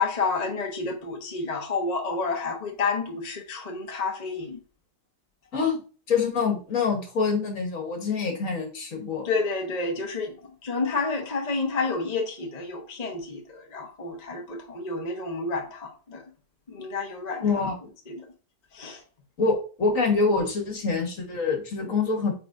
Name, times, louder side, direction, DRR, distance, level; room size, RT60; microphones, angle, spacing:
voice 1, 0.0-4.6 9.2-16.2 16.7-17.7 18.1-18.2 18.7-19.0, left 4 dB, 30° left, 1.0 m, -30 dB
voice 2, 6.1-9.3 17.4-17.7 19.4-22.3, left 4 dB, 55° left, 1.7 m, -25 dB
8.3 x 4.5 x 2.6 m
omnidirectional pair, 1.8 m